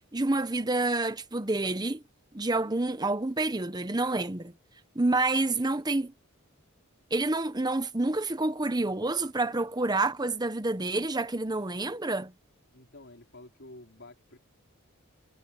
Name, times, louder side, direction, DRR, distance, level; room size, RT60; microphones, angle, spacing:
voice 1, 0.1-2.0 2.3-4.5 4.9-6.1 7.1-12.3, right 2 dB, 20° right, 0.9 m, -28 dB
voice 2, 12.7-14.4, left 2 dB, 55° left, 5.1 m, -50 dB
head